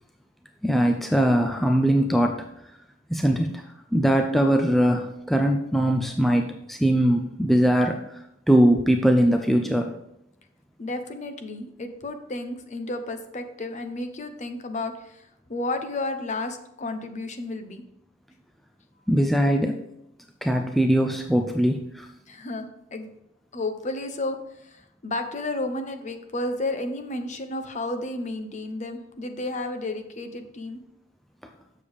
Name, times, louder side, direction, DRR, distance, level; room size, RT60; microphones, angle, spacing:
voice 1, 0.6-2.5 3.1-3.6 3.9-10.0 19.1-19.8 20.4-22.1, equal, ahead, 3 dB, 0.4 m, -21 dB
voice 2, 10.8-17.8 22.3-22.7 22.9-23.1 23.5-30.8, left 2 dB, 35° left, 8 dB, 0.7 m, -32 dB
7.1 x 6.6 x 3.5 m, 0.80 s
head